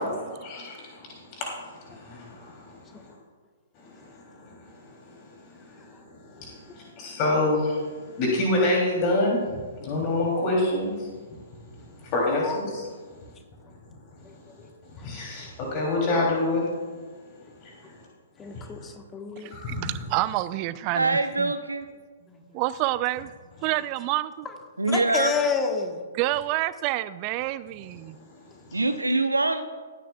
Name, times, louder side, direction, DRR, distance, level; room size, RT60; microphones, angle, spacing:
voice 1, 0.0-3.1 3.8-5.2 5.5-5.8 6.1-11.1 12.1-12.6 15.0-16.7 17.6-17.9 18.5-18.9 19.5-19.9 28.7-28.8, left 2 dB, 35° left, 3.0 m, -28 dB
voice 2, 12.2-12.6 14.2-14.7 18.4-19.5 22.3-22.4 24.8-26.0, left 5 dB, 15° left, 1.3 m, -30 dB
voice 3, 19.4-21.5 22.5-23.3 23.6-24.3 26.1-28.2, right 16 dB, 35° right, 0.4 m, -28 dB
voice 4, 20.9-21.9 24.8-25.4 28.7-29.6, right 2 dB, 85° right, 0.9 m, -24 dB
18.0 x 9.3 x 2.3 m
figure-of-eight pair, 120°, 0 cm